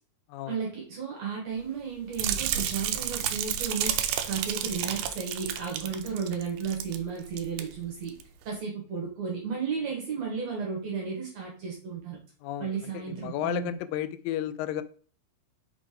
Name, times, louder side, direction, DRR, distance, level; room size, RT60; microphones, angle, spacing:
voice 1, 0.5-4.0 4.3-8.1 8.4-12.2 12.6-13.8, right 6 dB, 60° right, 0 dB, 2.3 m, -33 dB
sound 1, 2.1-7.0 7.3-7.6 8.1-8.2, right 10 dB, 80° right, 2.2 m, -31 dB
voice 2, 13.2-14.8, left 12 dB, 90° left, 12 dB, 2.2 m, -32 dB
5.7 x 5.0 x 3.7 m, 0.43 s
omnidirectional pair, 3.9 m